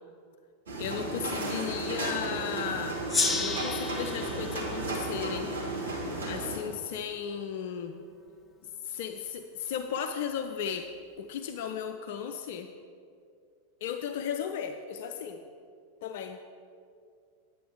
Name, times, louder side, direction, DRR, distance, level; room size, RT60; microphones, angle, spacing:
sound 1, 0.7-6.6, right 2 dB, 70° right, 1.8 m, -34 dB
voice 1, 0.8-3.0 3.4-5.5 6.2-8.0 8.8-10.9 11.2-12.7 13.8-15.4 16.0-16.4, left 8 dB, 50° left, 7 dB, 0.4 m, -35 dB
Gong, 3.1-6.2, left 4 dB, 15° left, 0.7 m, -33 dB
9.2 x 7.7 x 3.7 m, 2.3 s
figure-of-eight pair, 90°, 0 cm